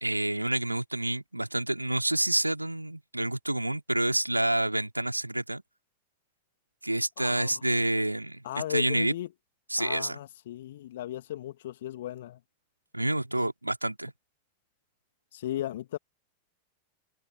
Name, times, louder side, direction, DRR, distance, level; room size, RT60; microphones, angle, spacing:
voice 1, 0.0-5.6 6.8-8.4 8.7-9.1 9.7-10.2 12.9-14.1, right 1 dB, 85° right, 3.1 m, -28 dB
voice 2, 7.2-7.6 8.4-9.3 9.8-12.4 13.4-13.5 15.3-16.0, left 13 dB, 60° left, 1.8 m, -36 dB
open air
figure-of-eight pair, 90°, 0 cm